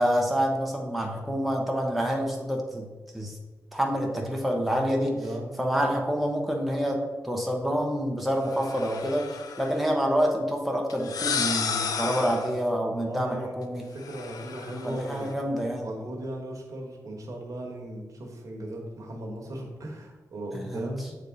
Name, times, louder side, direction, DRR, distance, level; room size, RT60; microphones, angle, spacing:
voice 1, 0.0-3.4 3.7-5.1 5.6-13.8 14.8-15.9 20.7-20.9, equal, ahead, 0 dB, 0.8 m, -27 dB
voice 2, 4.7-5.5 12.9-15.4 15.8-21.2, right 1 dB, 65° right, 1 dB, 1.2 m, -37 dB
sound 1, 8.5-9.8 10.9-12.6 14.0-15.3, left 6 dB, 85° left, 0.5 m, -32 dB
7.3 x 3.5 x 3.9 m, 1.3 s
cardioid pair, 90°, 6 cm